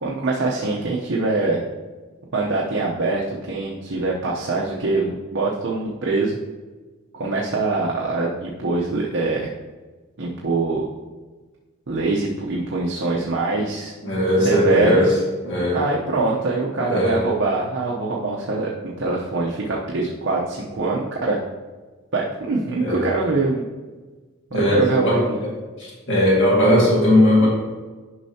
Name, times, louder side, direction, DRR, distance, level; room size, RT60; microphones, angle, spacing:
voice 1, 0.0-1.6 2.3-6.4 7.2-9.5 10.2-10.9 11.9-13.9 14.4-15.1 15.7-21.4 22.1-23.6 24.5-25.5, right 3 dB, 60° right, -4 dB, 0.8 m, -23 dB
voice 2, 14.0-15.1 15.4-15.8 16.9-17.2 22.8-23.1 24.5-25.5 26.1-27.5, left 1 dB, 60° left, -5 dB, 2.0 m, -18 dB
9.8 x 5.5 x 2.8 m, 1.3 s
head